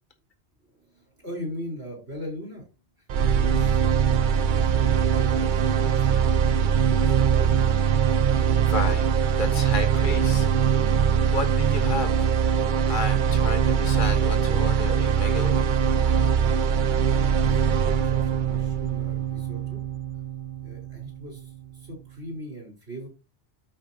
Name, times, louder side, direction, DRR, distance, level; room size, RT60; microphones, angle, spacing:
voice 1, 0.6-2.7 3.0-3.1 3.3-6.3 6.9-7.6 17.1-19.9 20.6-23.1, equal, 75° right, 0 dB, 4.9 m, -39 dB
sound 1, 3.1-21.1, right 7 dB, 60° right, 0.6 m, -22 dB
voice 2, 8.6-10.8 11.3-12.3 12.9-15.6, left 3 dB, 45° left, 8 dB, 1.6 m, -32 dB
13.0 x 5.1 x 2.9 m, 0.28 s
omnidirectional pair, 1.1 m